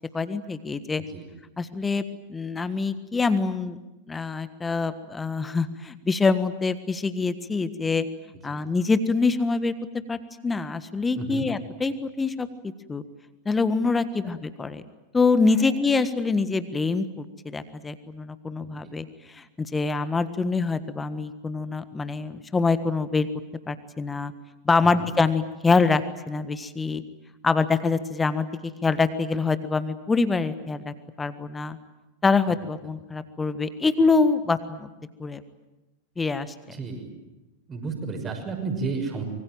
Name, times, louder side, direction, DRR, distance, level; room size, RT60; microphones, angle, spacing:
voice 1, 0.1-1.0 1.6-2.0 2.3-3.8 4.1-8.0 8.4-9.7 10.1-13.0 13.4-14.8 15.1-23.3 23.7-24.3 24.6-27.0 27.4-31.8 32.2-34.9 35.2-35.4 36.2-36.8, left 4 dB, 15° left, 13 dB, 1.5 m, -25 dB
voice 2, 11.2-11.5 14.2-14.3 15.6-15.7 18.6-18.9 24.8-25.1 36.7-37.1 37.7-39.2, right 4 dB, 25° right, 5 dB, 6.3 m, -33 dB
25.5 x 24.0 x 9.2 m, 1.0 s
figure-of-eight pair, 90°, 0 cm